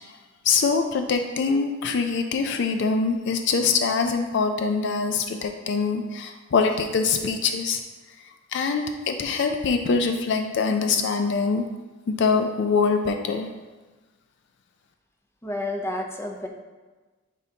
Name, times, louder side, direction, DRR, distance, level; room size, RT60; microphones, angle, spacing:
voice 1, 0.4-7.8 8.5-11.7 12.1-13.5, left 5 dB, 60° left, 6 dB, 0.4 m, -24 dB
voice 2, 15.4-16.5, left 1 dB, 10° left, 2 dB, 0.5 m, -30 dB
9.0 x 3.9 x 2.8 m, 1.3 s
head